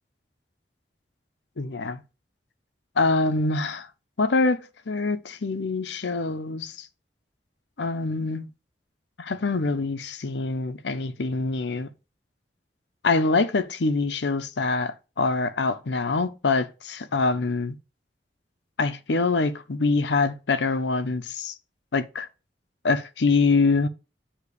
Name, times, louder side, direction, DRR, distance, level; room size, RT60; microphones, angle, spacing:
voice 1, 1.6-2.0 3.0-3.9 4.2-4.6 4.9-6.9 7.8-8.5 9.2-11.9 13.0-17.7 18.8-21.5 21.9-22.3 22.8-23.9, left 3 dB, 85° left, 0.7 m, -24 dB
8.3 x 3.0 x 4.9 m
head